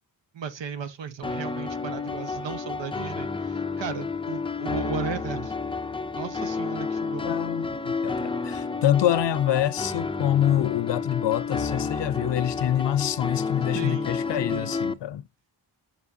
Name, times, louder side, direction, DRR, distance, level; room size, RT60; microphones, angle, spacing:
voice 1, 0.3-5.5 6.2-7.3 13.6-14.1 14.5-14.7, right 7 dB, 90° right, 1.1 m, -35 dB
sound 1, 1.2-14.9, left 4 dB, 15° left, 0.4 m, -30 dB
voice 2, 7.2-15.2, left 11 dB, 75° left, 0.6 m, -26 dB
7.1 x 5.5 x 2.7 m
wide cardioid pair, 115°, 43 cm